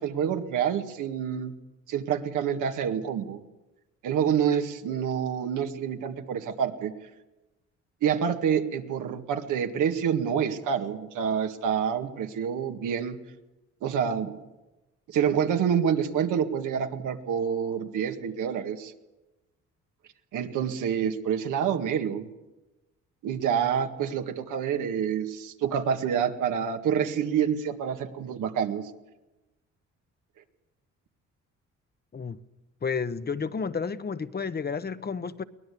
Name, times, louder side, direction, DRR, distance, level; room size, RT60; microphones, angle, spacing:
voice 1, 0.0-1.5 1.9-3.4 4.0-6.9 8.0-13.2 13.8-14.3 15.1-18.9 20.3-22.3 23.2-28.8, right 8 dB, 85° right, 2.0 m, -27 dB
voice 2, 32.8-35.4, left 5 dB, 30° left, 1.0 m, -31 dB
23.0 x 18.5 x 8.5 m
cardioid pair, 90°, 30 cm